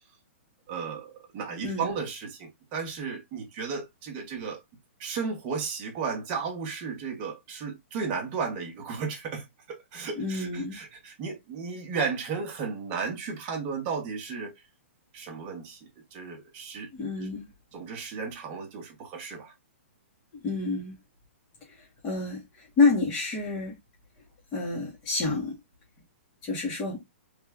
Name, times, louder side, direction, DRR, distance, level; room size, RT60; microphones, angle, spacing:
voice 1, 0.7-4.6 5.0-14.5 15.1-15.8 16.1-16.9 17.2-17.3 17.7-19.5, right 5 dB, 20° right, 0.9 m, -34 dB
voice 2, 10.2-10.8 16.9-17.4 20.3-20.9 21.7-23.7 24.5-25.6 26.4-27.0, left 3 dB, 15° left, 0.8 m, -28 dB
3.3 x 2.2 x 3.3 m
hypercardioid pair, 175°, 7 cm